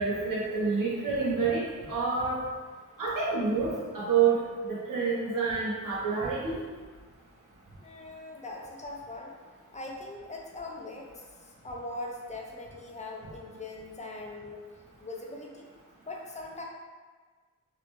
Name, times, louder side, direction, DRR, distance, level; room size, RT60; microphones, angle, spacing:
voice 1, 0.0-2.4 3.0-4.4 4.7-6.6, right 5 dB, 90° right, -7 dB, 0.7 m, -28 dB
voice 2, 7.8-9.4 9.7-14.6 15.0-15.7 16.0-16.6, left 2 dB, 20° left, -1 dB, 0.4 m, -41 dB
2.8 x 2.1 x 2.9 m, 1.5 s
wide cardioid pair, 80°, 32 cm